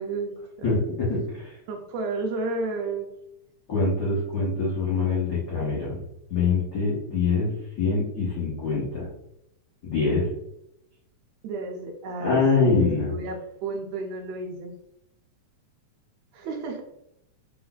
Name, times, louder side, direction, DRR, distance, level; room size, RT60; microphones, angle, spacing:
voice 1, 0.0-0.8 1.7-3.1 11.4-14.7 16.3-16.8, right 3 dB, 80° right, 3 dB, 1.7 m, -32 dB
voice 2, 0.6-1.6 3.7-6.0 6.3-7.5 7.8-9.1 9.8-10.3 12.2-13.1, left 4 dB, 85° left, -7 dB, 0.9 m, -24 dB
4.8 x 4.0 x 2.3 m, 0.81 s
omnidirectional pair, 3.5 m